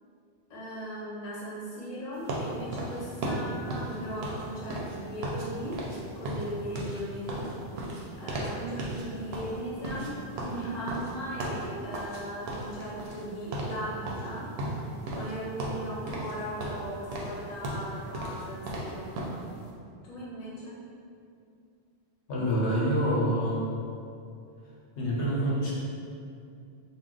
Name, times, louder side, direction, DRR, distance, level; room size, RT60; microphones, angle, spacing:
voice 1, 0.5-5.8 6.1-7.5 8.2-14.5 15.1-19.1 20.0-20.8, equal, 45° left, -7 dB, 0.7 m, -38 dB
sound 1, 2.3-5.5 5.7-6.0 6.2-8.5 8.8-9.0 9.3-12.2 12.5-13.3 13.5-13.8 14.1-15.3 15.6-16.3 16.6-19.4, right 2 dB, 70° right, 0.8 m, -35 dB
voice 2, 22.3-23.6 25.0-25.7, equal, 90° left, -5 dB, 1.0 m, -26 dB
2.3 x 2.1 x 3.7 m, 2.4 s
omnidirectional pair, 1.1 m